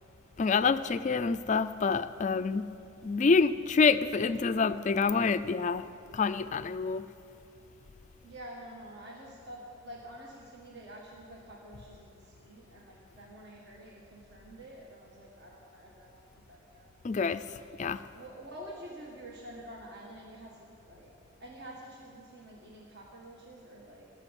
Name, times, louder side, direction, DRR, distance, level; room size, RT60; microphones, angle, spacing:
voice 1, 0.4-2.7 3.0-5.8 6.1-7.0 17.0-17.4 17.8-18.0, left 4 dB, 35° left, 0.3 m, -27 dB
voice 2, 8.2-16.2 16.5-16.9 18.1-21.1 21.4-24.1, right 1 dB, 50° right, 1.6 m, -48 dB
16.0 x 7.7 x 9.8 m
head